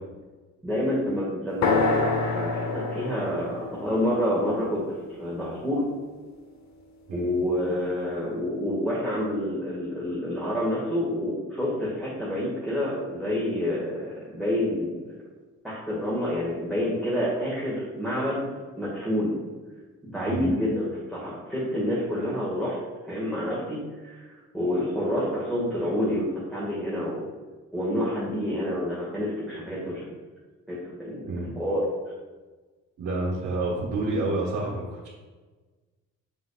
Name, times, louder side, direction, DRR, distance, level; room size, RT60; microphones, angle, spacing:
voice 1, 0.6-5.9 7.1-15.1 15.6-18.5 18.8-19.4 20.0-22.8 23.0-24.3 24.5-27.3 27.7-30.1 30.7-31.2 31.6-31.9, equal, ahead, -7 dB, 1.9 m, -28 dB
sound 1, 1.6-5.5, left 3 dB, 65° left, 1.0 m, -28 dB
voice 2, 33.0-35.1, right 2 dB, 70° right, -5 dB, 1.5 m, -29 dB
6.7 x 6.0 x 2.4 m, 1.3 s
cardioid pair, 90°, 30 cm